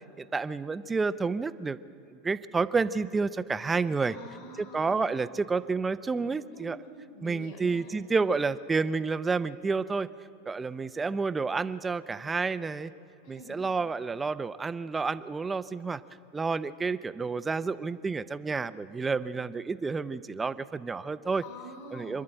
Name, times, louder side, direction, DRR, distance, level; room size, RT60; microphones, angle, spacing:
voice 1, 0.2-1.8 2.1-4.2 4.6-6.8 7.2-10.1 10.5-12.9 13.3-16.0 16.3-21.4 21.9-22.2, right 4 dB, 15° right, 14 dB, 0.5 m, -30 dB
voice 2, 4.0-5.1 6.5-7.9 13.2-13.6 21.4-22.2, equal, 55° left, 3 dB, 5.4 m, -46 dB
26.5 x 11.0 x 8.9 m, 2.6 s
supercardioid pair, 125°, 0 cm